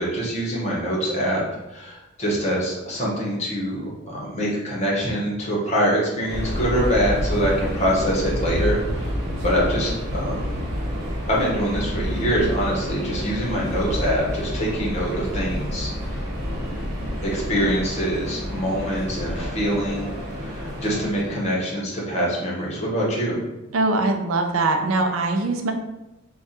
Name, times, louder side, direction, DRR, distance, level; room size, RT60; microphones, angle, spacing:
voice 1, 0.0-1.4 1.7-9.1 9.4-10.5 11.3-16.7 17.2-20.1 20.3-23.4, equal, 35° left, -4 dB, 1.1 m, -24 dB
Subway metro underground, 6.3-21.6, equal, 55° right, 1.1 m, -29 dB
voice 2, 23.7-25.7, right 2 dB, 75° right, 4 dB, 0.5 m, -22 dB
3.4 x 2.3 x 4.2 m, 0.99 s
head